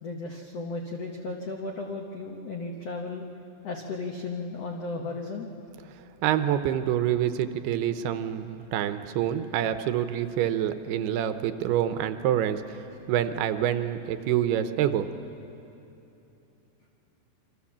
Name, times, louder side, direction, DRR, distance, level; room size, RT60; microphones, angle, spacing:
voice 1, 0.0-3.3 3.6-5.5, left 3 dB, 80° left, 1 dB, 1.4 m, -35 dB
voice 2, 6.2-12.8 13.1-15.1, right 10 dB, 75° right, 10 dB, 2.7 m, -27 dB
27.5 x 25.0 x 7.3 m, 2.9 s
omnidirectional pair, 4.9 m